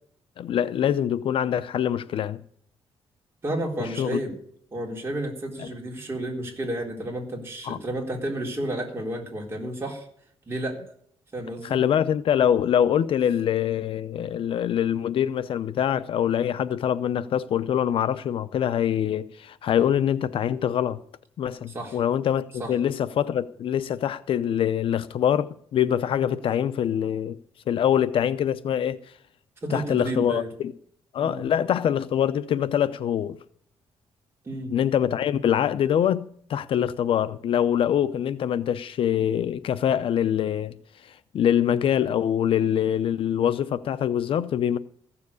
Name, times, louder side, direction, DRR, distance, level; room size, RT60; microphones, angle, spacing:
voice 1, 0.4-2.4 4.0-4.2 5.6-5.7 7.7-7.8 11.6-21.0 21.4-27.4 27.7-29.0 29.7-30.7 31.1-33.4 34.7-40.7 41.3-44.8, left 9 dB, 60° left, 0.6 m, -24 dB
voice 2, 3.4-4.3 4.7-10.1 10.5-10.8 11.3-11.8 21.7-22.0 22.6-22.7 29.6-30.5 31.2-31.5 34.4-34.8, right 1 dB, 25° right, 3.9 m, -31 dB
15.0 x 7.1 x 8.4 m
cardioid pair, 145°, 10 cm